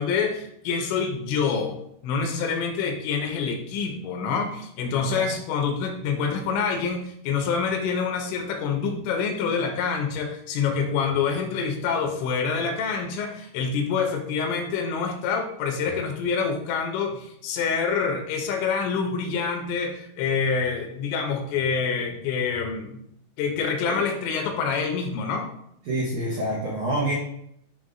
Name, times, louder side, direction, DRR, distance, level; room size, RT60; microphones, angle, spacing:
voice 1, 0.0-1.8 2.0-23.0 23.4-25.5, left 5 dB, 90° left, 3 dB, 3.2 m, -26 dB
voice 2, 25.9-27.1, right 1 dB, 85° right, -4 dB, 1.7 m, -26 dB
10.0 x 4.1 x 2.5 m, 0.72 s
omnidirectional pair, 5.2 m